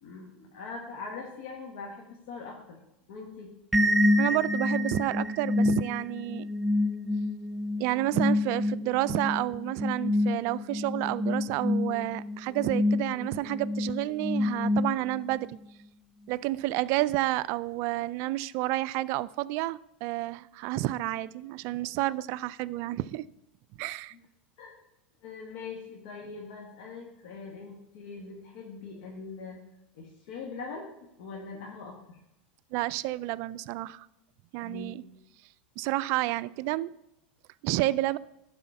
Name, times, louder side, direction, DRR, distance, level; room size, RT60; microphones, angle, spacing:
voice 1, 0.0-2.8 3.1-3.5 24.6-24.7 25.2-29.6 29.9-30.8 31.2-32.2 34.6-34.9, left 4 dB, 65° left, 0 dB, 1.5 m, -42 dB
sound 1, 3.7-15.4, left 1 dB, ahead, 0.7 m, -28 dB
voice 2, 4.2-6.5 7.8-15.6 16.3-23.3 23.8-24.1 32.7-34.1 34.5-35.0 35.8-36.9 37.6-38.2, right 17 dB, 55° right, 19 dB, 0.3 m, -30 dB
11.0 x 4.2 x 5.6 m, 0.87 s
hypercardioid pair, 105°, 5 cm